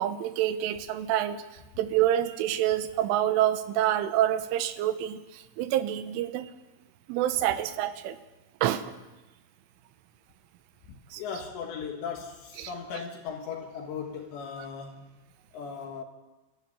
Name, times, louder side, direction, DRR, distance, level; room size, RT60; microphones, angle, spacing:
voice 1, 0.0-6.5 7.1-8.2 8.6-8.9 11.1-11.2 12.6-12.7, right 12 dB, 85° right, 11 dB, 3.4 m, -27 dB
voice 2, 11.2-15.1 15.5-16.0, left 6 dB, 70° left, 2 dB, 3.6 m, -37 dB
28.5 x 14.0 x 7.1 m, 1.1 s
omnidirectional pair, 5.7 m